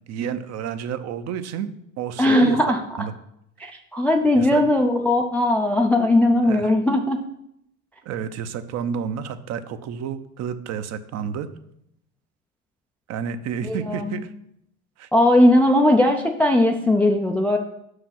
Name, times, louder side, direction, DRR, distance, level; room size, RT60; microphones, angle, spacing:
voice 1, 0.1-2.6 3.0-3.1 4.4-4.6 6.4-6.7 8.0-11.5 13.1-14.3 15.0-15.1, right 8 dB, 40° right, 11 dB, 0.6 m, -30 dB
voice 2, 2.2-2.8 3.6-7.2 13.6-14.1 15.1-17.6, left 1 dB, 5° left, 3 dB, 0.3 m, -18 dB
5.3 x 4.8 x 5.9 m, 0.76 s
hypercardioid pair, 95°, 41 cm